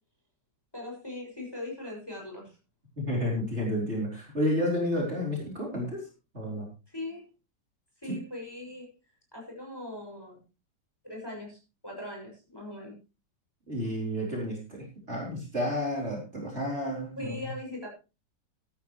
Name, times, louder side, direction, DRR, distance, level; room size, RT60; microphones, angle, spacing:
voice 1, 0.7-2.5 6.9-7.2 8.0-8.9 9.3-10.4 11.0-12.9 17.2-17.9, left 1 dB, 10° left, -1 dB, 6.5 m, -40 dB
voice 2, 3.0-6.0 6.3-6.7 8.1-8.2 13.7-17.3, equal, 40° right, -2 dB, 4.5 m, -31 dB
14.0 x 13.0 x 3.2 m, 0.30 s
omnidirectional pair, 1.9 m